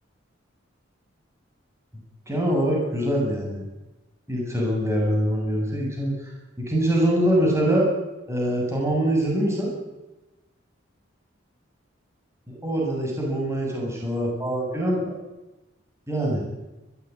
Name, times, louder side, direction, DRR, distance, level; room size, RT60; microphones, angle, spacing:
voice 1, 2.3-3.6 4.3-6.3 6.6-7.9 8.3-9.7 12.5-15.2 16.1-16.4, right 1 dB, 15° right, -2 dB, 7.9 m, -24 dB
22.5 x 18.5 x 9.9 m, 1.0 s
head